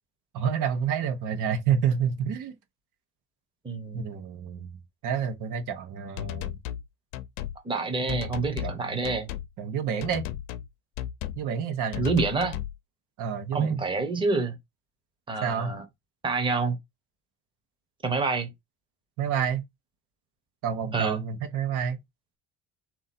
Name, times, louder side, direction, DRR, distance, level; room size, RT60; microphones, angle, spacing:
voice 1, 0.3-2.5 3.9-4.8 5.0-6.6 8.0-8.2 8.5-9.1 9.6-10.2 11.4-12.0 13.2-13.8 15.4-15.7 19.2-19.6 20.6-22.0, right 7 dB, 65° right, 1.2 m, -29 dB
voice 2, 3.6-4.2 7.6-9.3 12.0-12.6 13.5-14.6 15.3-15.8 16.2-16.8 18.0-18.5 20.9-21.2, right 4 dB, 15° right, 1.0 m, -27 dB
sound 1, 6.2-6.9 7.1-7.6 8.1-8.8 9.0-9.5 10.0-10.7 11.0-11.4 11.9-12.8, left 12 dB, 90° left, 0.7 m, -34 dB
3.8 x 3.0 x 4.2 m
cardioid pair, 130°, 34 cm